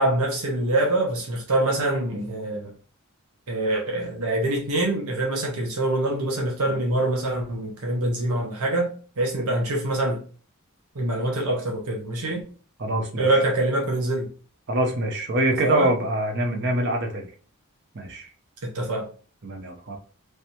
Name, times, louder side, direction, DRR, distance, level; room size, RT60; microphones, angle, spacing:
voice 1, 0.0-2.7 3.5-10.2 10.9-12.4 13.2-14.3 15.6-15.9 18.6-19.1, right 1 dB, 85° right, -1 dB, 0.9 m, -25 dB
voice 2, 12.8-13.4 14.7-17.3 17.9-18.3 19.4-20.0, right 1 dB, 50° right, 3 dB, 0.7 m, -25 dB
3.3 x 2.6 x 2.8 m, 0.40 s
head